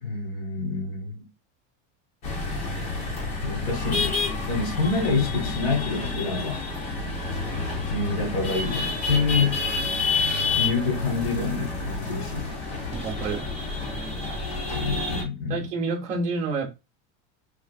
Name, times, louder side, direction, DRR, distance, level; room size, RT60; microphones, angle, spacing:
voice 1, 0.0-1.3 3.4-4.2 4.5-6.6 7.9-9.6 10.6-12.6 14.7-15.7, left 4 dB, 60° left, 1.3 m, -27 dB
sound 1, 2.2-15.2, left 3 dB, 20° left, 0.3 m, -29 dB
voice 2, 12.9-13.5 15.5-16.7, right 4 dB, 20° right, 0.6 m, -29 dB
3.3 x 2.4 x 2.2 m
cardioid pair, 180°, 35 cm